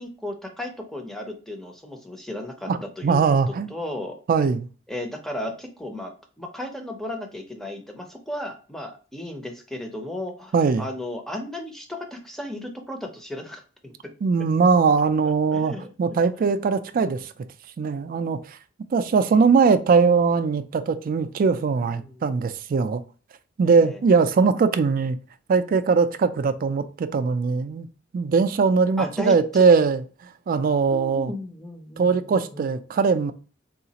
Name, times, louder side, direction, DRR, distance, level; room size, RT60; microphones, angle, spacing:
voice 1, 0.0-3.2 3.7-4.2 4.9-6.1 6.4-14.1 15.5-16.5 21.8-22.3 23.8-24.0 29.0-29.6 30.9-32.7, left 1 dB, ahead, 0.6 m, -35 dB
voice 2, 3.0-3.7 4.3-4.7 10.5-10.8 14.2-15.7 16.0-17.5 17.8-18.6 18.9-23.0 23.6-25.2 25.5-27.9 28.1-31.3 32.0-33.3, right 5 dB, 45° right, 0.3 m, -21 dB
3.8 x 2.4 x 2.8 m
head